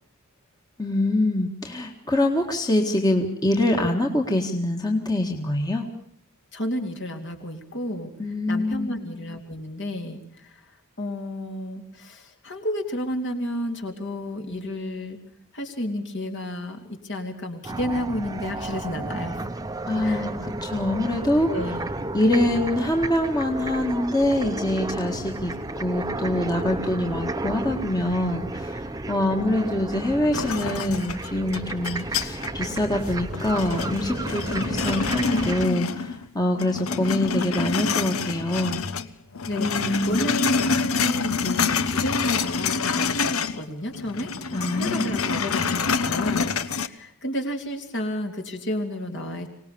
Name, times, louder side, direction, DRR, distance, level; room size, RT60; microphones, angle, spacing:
voice 1, 0.8-5.9 8.2-9.0 19.9-21.5 22.1-38.8 39.6-40.2 44.5-45.1, left 1 dB, 20° left, 2 dB, 1.8 m, -25 dB
voice 2, 6.5-8.1 8.5-10.6 11.0-15.2 15.5-19.5 20.0-20.3 21.5-21.9 39.5-44.3 44.7-49.5, left 1 dB, 55° left, 4 dB, 3.4 m, -31 dB
sound 1, 17.6-35.7, right 2 dB, 15° right, 0.9 m, -32 dB
sound 2, 30.3-32.7 33.1-36.3 36.6-39.1 39.3-43.6 43.9-46.9, left 5 dB, 70° left, 1.1 m, -27 dB
25.5 x 19.0 x 7.0 m, 0.71 s
head